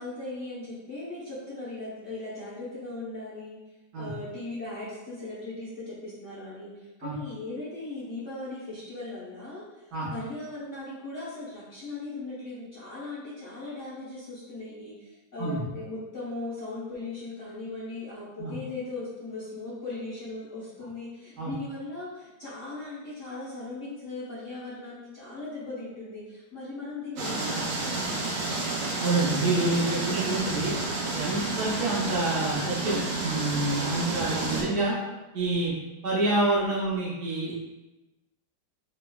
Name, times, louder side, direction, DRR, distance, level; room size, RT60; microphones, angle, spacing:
voice 1, 0.0-3.6 4.0-9.6 10.1-28.2 34.5-35.1, left 2 dB, 50° left, -9 dB, 1.1 m, -38 dB
sound 1, 27.2-34.6, right 3 dB, 80° right, 1.4 m, -30 dB
voice 2, 29.0-30.8 31.1-34.9 35.3-35.7 36.0-37.6, right 2 dB, 65° right, -6 dB, 1.3 m, -27 dB
3.6 x 3.0 x 2.2 m, 1.1 s
omnidirectional pair, 1.9 m